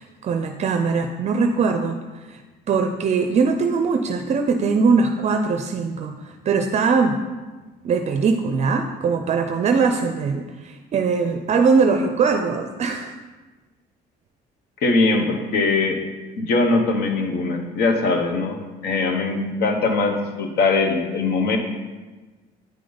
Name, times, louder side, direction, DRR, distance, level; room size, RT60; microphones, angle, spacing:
voice 1, 0.0-2.0 2.3-2.4 2.7-6.1 6.5-7.2 7.8-13.1, right 5 dB, 40° right, 6 dB, 0.5 m, -21 dB
voice 2, 14.8-16.0 16.4-21.6, left 3 dB, 70° left, 4 dB, 1.0 m, -21 dB
9.2 x 5.0 x 3.9 m, 1.3 s
cardioid pair, 110°, 17 cm